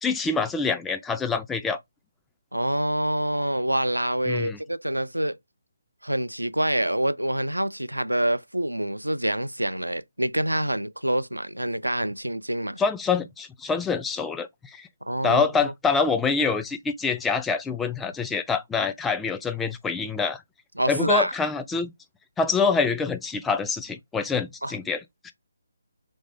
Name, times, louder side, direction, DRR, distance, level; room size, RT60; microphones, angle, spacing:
voice 1, 0.0-1.8 4.3-4.6 12.8-14.9 15.2-20.4 20.9-21.9 22.4-25.3, left 5 dB, 5° left, 0.3 m, -26 dB
voice 2, 2.5-5.4 6.0-12.8 15.0-15.7 20.8-21.3 24.6-24.8, right 1 dB, 90° right, 0.3 m, -26 dB
3.2 x 2.6 x 3.2 m
figure-of-eight pair, 145°, 0 cm